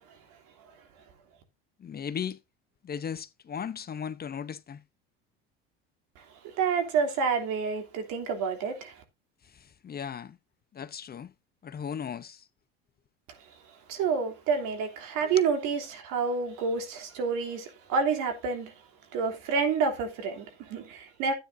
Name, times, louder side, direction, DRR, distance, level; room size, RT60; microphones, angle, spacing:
voice 1, 1.8-2.4 2.8-4.8 9.5-10.4 10.7-11.3 11.6-12.4 15.2-15.5, left 7 dB, 30° left, 0.8 m, -37 dB
voice 2, 6.6-8.9 13.9-18.7 19.1-21.3, right 5 dB, 70° right, 3.0 m, -28 dB
12.5 x 9.2 x 2.7 m
hypercardioid pair, 80°, 31 cm